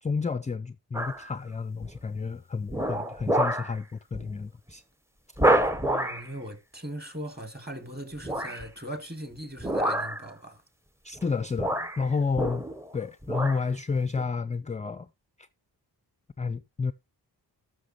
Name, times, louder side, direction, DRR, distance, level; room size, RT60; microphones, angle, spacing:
voice 1, 0.0-4.8 11.0-12.6 12.9-15.1 16.4-16.9, left 4 dB, 20° left, 0.4 m, -30 dB
sound 1, 0.9-1.3 1.8-2.2 2.7-3.7 4.1-4.3 4.7-4.8 5.4-6.3 8.2-8.7 9.6-10.3 11.2-11.3 11.6-12.9 13.2-13.6 14.1-14.2, right 1 dB, 5° right, 0.7 m, -27 dB
voice 2, 5.8-10.6, right 1 dB, 25° right, 2.3 m, -39 dB
13.0 x 6.2 x 2.9 m
cardioid pair, 75°, 40 cm